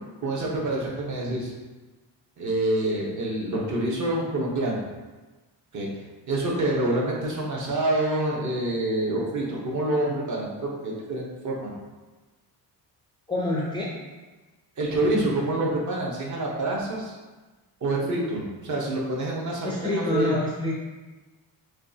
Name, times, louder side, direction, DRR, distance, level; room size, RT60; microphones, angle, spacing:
voice 1, 0.2-1.5 2.4-4.8 5.7-5.9 6.3-11.7 14.8-17.1 17.8-20.4, right 1 dB, 45° right, -3 dB, 0.9 m, -27 dB
voice 2, 13.3-13.9 19.6-20.8, left 1 dB, 10° left, -5 dB, 0.3 m, -27 dB
6.1 x 2.3 x 2.7 m, 1.2 s
cardioid pair, 170°, 42 cm